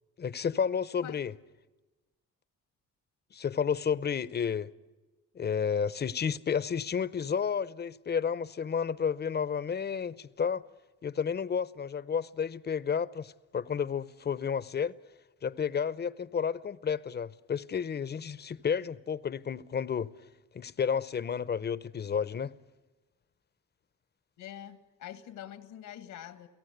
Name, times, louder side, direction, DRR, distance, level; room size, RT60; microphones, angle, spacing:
voice 1, 0.2-1.3 3.3-4.7 5.3-10.6 11.0-15.0 15.4-20.1 20.5-22.5, left 7 dB, 35° left, 0.8 m, -31 dB
voice 2, 24.4-26.5, left 11 dB, 85° left, 1.7 m, -45 dB
29.0 x 18.0 x 8.0 m
cardioid pair, 90°, 30 cm